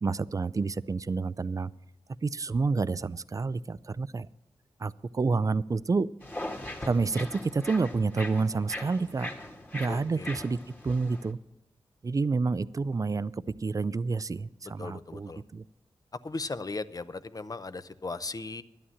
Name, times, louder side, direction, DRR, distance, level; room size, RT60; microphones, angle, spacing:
voice 1, 0.0-1.7 2.2-4.3 4.8-6.1 6.9-9.3 9.7-10.6 10.8-11.4 12.0-13.3 13.6-15.6, right 4 dB, 35° right, 18 dB, 0.4 m, -29 dB
sound 1, 6.2-11.3, left 1 dB, 15° left, 2.0 m, -40 dB
voice 2, 9.9-10.4 14.8-15.4 16.2-18.6, left 3 dB, 35° left, 13 dB, 0.6 m, -37 dB
11.0 x 8.7 x 7.2 m, 0.89 s
cardioid pair, 55°, 10 cm